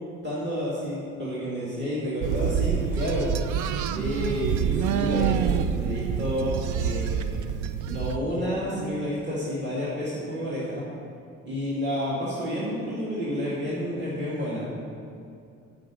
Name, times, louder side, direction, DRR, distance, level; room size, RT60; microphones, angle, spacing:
voice 1, 0.2-3.3 3.9-7.5 7.9-10.9 11.4-14.9, equal, 35° right, -7 dB, 2.2 m, -30 dB
sound 1, 2.2-8.2, right 8 dB, 80° right, 0.5 m, -27 dB
9.0 x 5.2 x 7.4 m, 2.5 s
cardioid pair, 90°, 30 cm